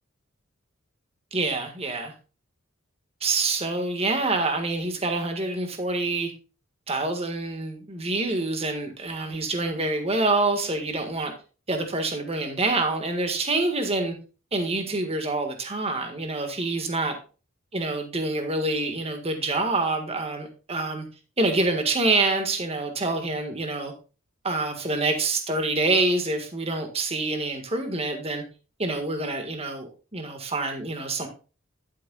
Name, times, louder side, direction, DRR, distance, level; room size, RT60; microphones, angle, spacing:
voice 1, 1.3-2.1 3.2-6.3 6.9-11.3 11.7-14.2 14.5-17.1 17.7-21.0 21.4-23.9 24.4-28.4 28.8-31.3, right 2 dB, 30° right, 5 dB, 1.7 m, -26 dB
11.0 x 9.4 x 2.4 m, 0.34 s
head